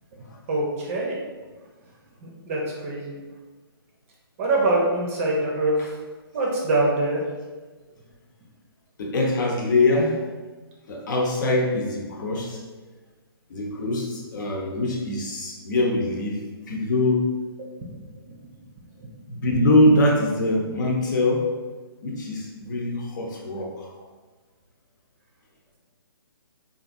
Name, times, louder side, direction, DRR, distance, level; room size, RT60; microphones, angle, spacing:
voice 1, 0.5-1.2 2.2-3.2 4.4-5.8 6.3-7.2 17.6-17.7, right 2 dB, 35° right, -2 dB, 0.6 m, -24 dB
voice 2, 9.0-10.2 10.9-12.6 13.5-16.4 16.7-17.2 19.3-21.5 22.0-23.9, left 2 dB, 50° left, -1 dB, 0.9 m, -23 dB
3.7 x 2.6 x 2.6 m, 1.3 s
hypercardioid pair, 140°, 13 cm